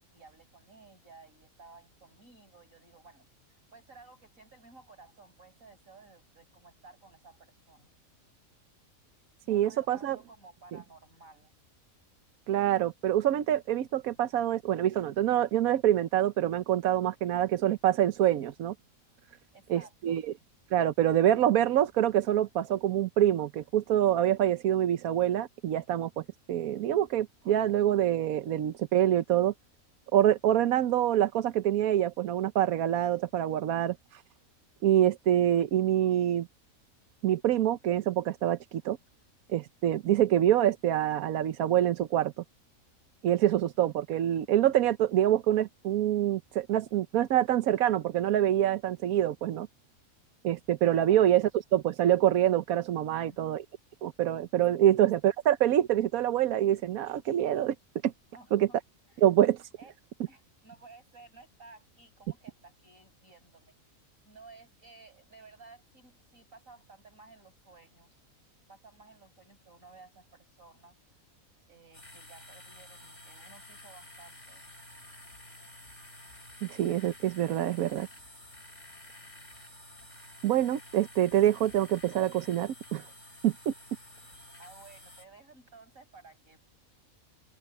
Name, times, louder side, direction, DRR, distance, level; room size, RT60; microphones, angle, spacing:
voice 1, 0.0-3.3 3.7-7.9 9.4-11.5 19.5-20.2 50.9-51.3 53.1-53.4 58.3-58.8 59.1-59.3 59.8-59.9 60.3-63.7 64.2-68.2 68.7-71.0 71.7-74.6 84.6-86.6, right 3 dB, 65° right, 7.3 m, -55 dB
voice 2, 9.5-10.2 12.5-18.7 19.7-20.3 20.7-29.5 30.1-34.2 34.8-36.5 37.2-39.0 39.5-42.3 43.2-49.7 50.4-53.6 54.0-57.7 58.0-58.1 58.5-58.7 59.2-59.7 76.6-78.1 80.4-83.0 83.4-83.7, right 11 dB, 80° right, 1.2 m, -26 dB
sound 1, 71.9-85.3, left 1 dB, 60° left, 5.9 m, -51 dB
open air
omnidirectional pair, 1.5 m